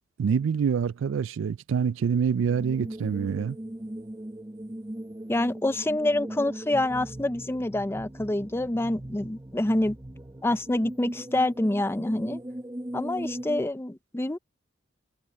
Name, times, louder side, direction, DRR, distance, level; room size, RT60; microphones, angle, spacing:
voice 1, 0.2-3.6, right 6 dB, 80° right, 0.4 m, -26 dB
sound 1, 2.4-13.6, right 1 dB, 20° right, 1.0 m, -39 dB
voice 2, 5.3-10.0 10.4-12.4 12.9-14.4, left 1 dB, 15° left, 0.5 m, -27 dB
head